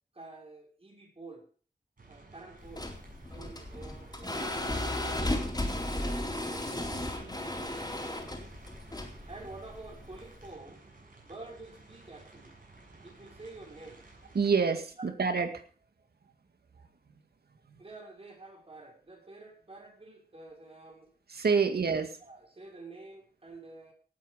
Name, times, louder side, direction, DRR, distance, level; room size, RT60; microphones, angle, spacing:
voice 1, 0.1-1.4 2.1-2.9 3.3-5.6 5.9-7.7 9.3-10.8 11.2-12.5 13.0-14.0 15.0-15.1 17.8-21.1 22.2-23.9, right 3 dB, 35° right, 0 dB, 6.2 m, -49 dB
sound 1, 2.0-14.5, right 2 dB, 60° right, 7.2 m, -53 dB
sound 2, 2.6-10.5, left 1 dB, 25° left, 4.0 m, -35 dB
voice 2, 14.3-15.6 21.3-22.1, right 5 dB, 85° right, 7 dB, 2.1 m, -27 dB
18.0 x 8.7 x 5.3 m, 0.43 s
wide cardioid pair, 80°, 16 cm